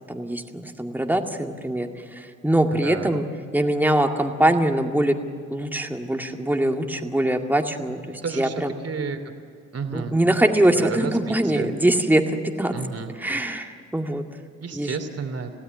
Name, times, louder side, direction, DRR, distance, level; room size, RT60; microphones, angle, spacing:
voice 1, 0.1-3.2 3.5-5.2 5.5-8.7 9.9-12.7 13.2-14.2 14.7-15.0, right 1 dB, 5° right, 4 dB, 2.1 m, -23 dB
voice 2, 2.7-3.2 8.2-8.5 8.8-9.2 9.7-10.2 10.7-11.7 12.7-13.1 14.6-15.5, right 5 dB, 40° right, 6 dB, 3.1 m, -31 dB
27.0 x 17.0 x 9.5 m, 2.3 s
hypercardioid pair, 50°, 39 cm